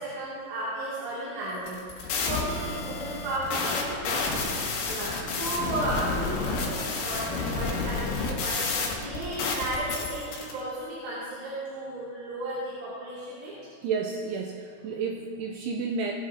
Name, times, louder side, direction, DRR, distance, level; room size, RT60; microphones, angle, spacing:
voice 1, 0.0-4.5 4.9-13.5, right 1 dB, 65° right, -9 dB, 4.3 m, -34 dB
sound 1, 1.6-10.5, left 4 dB, 85° left, 4.2 m, -30 dB
voice 2, 13.8-16.1, right 5 dB, 85° right, 1 dB, 2.4 m, -31 dB
20.0 x 11.5 x 2.7 m, 2.5 s
omnidirectional pair, 5.5 m